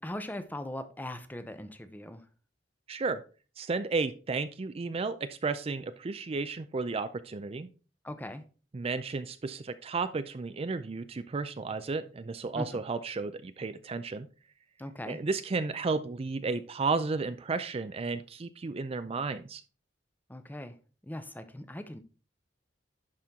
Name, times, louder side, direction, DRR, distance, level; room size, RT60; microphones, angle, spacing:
voice 1, 0.0-2.2 8.0-8.4 12.6-12.7 14.8-15.2 20.3-20.7 21.0-22.0, left 1 dB, 10° left, 10 dB, 0.7 m, -39 dB
voice 2, 2.9-3.2 3.6-7.7 8.7-14.3 15.1-19.6, right 4 dB, 35° right, 12 dB, 0.4 m, -33 dB
11.0 x 4.4 x 3.6 m, 0.36 s
head